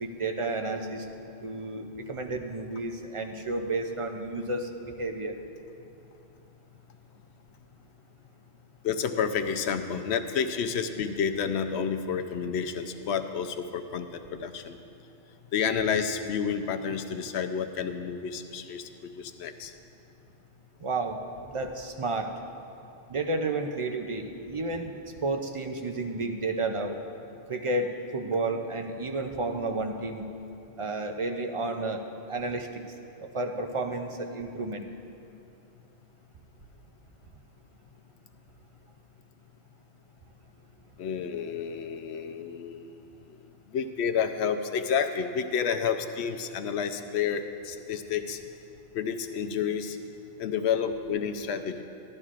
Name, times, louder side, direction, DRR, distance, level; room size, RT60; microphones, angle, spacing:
voice 1, 0.0-4.7 5.0-5.3 20.8-21.2 21.5-22.3 23.1-24.9 25.2-27.0 27.5-30.3 30.8-32.8 33.2-34.9, right 2 dB, 50° right, 4 dB, 0.4 m, -31 dB
voice 2, 8.8-14.8 15.5-19.7 41.0-43.0 43.7-48.4 48.9-50.0 50.4-51.8, left 7 dB, 75° left, 7 dB, 0.9 m, -30 dB
14.0 x 11.5 x 2.5 m, 2.7 s
omnidirectional pair, 1.1 m